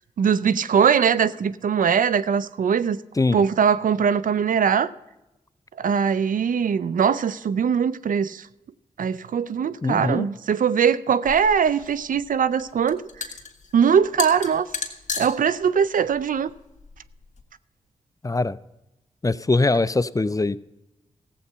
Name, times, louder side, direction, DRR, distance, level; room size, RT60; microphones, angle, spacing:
voice 1, 0.2-3.0 3.3-4.9 5.8-8.5 9.0-13.0 13.7-14.7 15.2-16.5, right 7 dB, 75° right, 0.5 m, -21 dB
voice 2, 9.8-10.2 18.2-18.6 19.2-20.6, left 3 dB, 25° left, 0.5 m, -22 dB
sound 1, 11.2-17.4, left 5 dB, 60° left, 1.9 m, -35 dB
15.0 x 7.9 x 5.6 m
cardioid pair, 40°, 14 cm